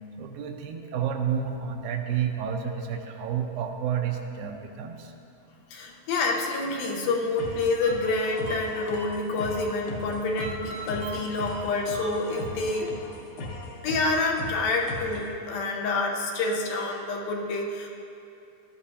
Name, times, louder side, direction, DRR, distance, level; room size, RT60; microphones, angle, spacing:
voice 1, 0.2-5.1, right 8 dB, 80° right, 3 dB, 2.4 m, -30 dB
voice 2, 5.7-12.9 13.8-17.9, left 3 dB, 80° left, 0 dB, 2.8 m, -28 dB
sound 1, 7.4-15.4, left 2 dB, 65° left, 2.3 m, -39 dB
sound 2, 7.8-9.6 10.4-12.7, right 2 dB, 60° right, 1.3 m, -41 dB
16.5 x 12.0 x 2.8 m, 2.7 s
omnidirectional pair, 4.2 m